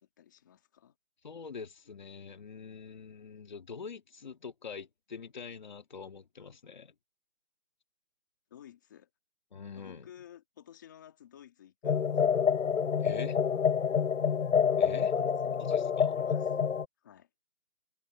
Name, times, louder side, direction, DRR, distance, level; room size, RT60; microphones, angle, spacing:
voice 1, 0.0-1.0 8.5-9.1 9.7-12.5 15.1-15.7 16.2-16.5 17.0-17.3, left 10 dB, 15° left, 2.1 m, -54 dB
voice 2, 1.2-6.9 9.5-10.1 13.0-13.4 14.8-15.1 15.6-16.2, left 5 dB, 30° left, 2.4 m, -44 dB
sound 1, 11.8-16.8, left 7 dB, 55° left, 0.7 m, -27 dB
figure-of-eight pair, 170°, 45 cm